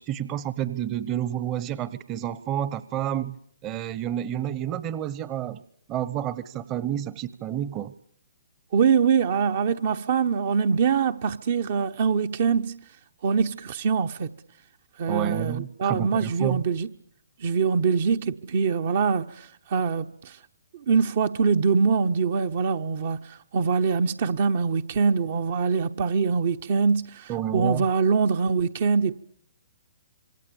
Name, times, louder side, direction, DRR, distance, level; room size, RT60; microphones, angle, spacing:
voice 1, 0.0-3.3 3.6-5.6 5.9-7.9 15.1-16.6 27.3-27.9, right 11 dB, 25° right, 1.0 m, -29 dB
voice 2, 8.7-12.8 13.2-14.3 15.0-16.9 17.4-20.3 20.9-23.2 23.5-29.1, right 5 dB, 50° right, 1.0 m, -23 dB
26.5 x 23.5 x 7.1 m
figure-of-eight pair, 125°, 0 cm